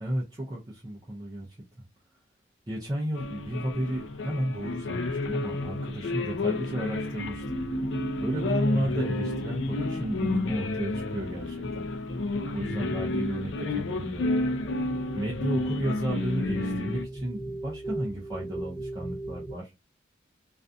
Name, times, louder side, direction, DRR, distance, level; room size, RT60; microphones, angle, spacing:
voice 1, 0.0-1.6 2.7-7.6 8.2-11.8 12.5-14.3 15.1-19.7, right 1 dB, 20° right, 0.5 m, -33 dB
sound 1, 3.1-17.1, left 2 dB, 80° left, 0.4 m, -31 dB
sound 2, 7.2-19.5, right 1 dB, 25° left, 0.8 m, -38 dB
2.4 x 2.3 x 2.5 m
head